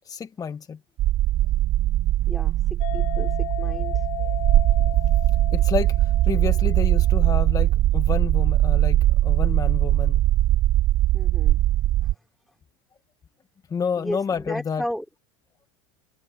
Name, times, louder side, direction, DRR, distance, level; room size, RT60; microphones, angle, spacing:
voice 1, 0.0-0.8 4.2-4.4 5.5-10.2 13.7-14.8, left 6 dB, 25° left, 1.2 m, -29 dB
sound 1, 1.0-12.1, right 14 dB, 40° right, 0.9 m, -20 dB
voice 2, 2.3-4.1 11.1-11.6 12.0-12.1 13.9-15.1, equal, ahead, 5.2 m, -34 dB
sound 2, 2.8-7.6, left 24 dB, 55° left, 1.3 m, -36 dB
hypercardioid pair, 100°, 16 cm